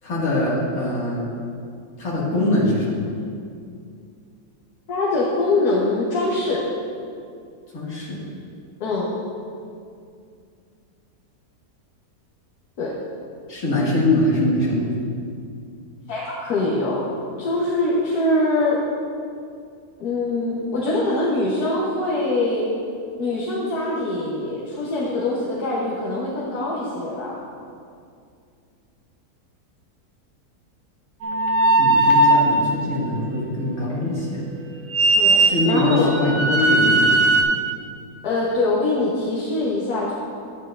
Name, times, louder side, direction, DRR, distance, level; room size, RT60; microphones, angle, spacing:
voice 1, 0.0-1.3 2.0-3.0 7.7-8.2 13.5-15.0 31.8-34.4 35.3-37.2, left 1 dB, 55° left, -6 dB, 2.3 m, -22 dB
voice 2, 4.9-6.6 8.8-9.1 12.8-12.9 16.1-17.0 17.4-18.8 20.0-22.7 23.2-27.4 35.2-36.1 38.2-40.1, left 2 dB, 70° left, -5 dB, 1.5 m, -23 dB
sound 1, 31.2-32.6 34.9-37.4, right 2 dB, 65° right, 1.2 m, -18 dB
12.0 x 8.9 x 2.5 m, 2.4 s
omnidirectional pair, 1.7 m